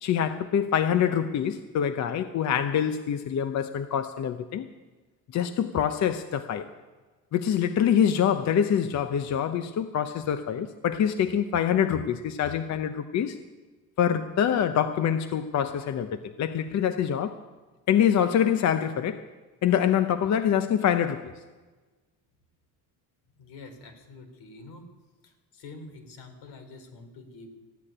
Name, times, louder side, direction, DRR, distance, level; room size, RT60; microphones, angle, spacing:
voice 1, 0.0-4.7 5.3-6.7 7.3-13.4 14.0-17.4 17.9-19.2 19.6-21.3, left 9 dB, 45° left, 10 dB, 0.7 m, -25 dB
voice 2, 23.4-24.8 25.2-27.5, left 3 dB, 75° left, 6 dB, 3.1 m, -46 dB
15.0 x 8.8 x 9.9 m, 1.3 s
cardioid pair, 130°, 40 cm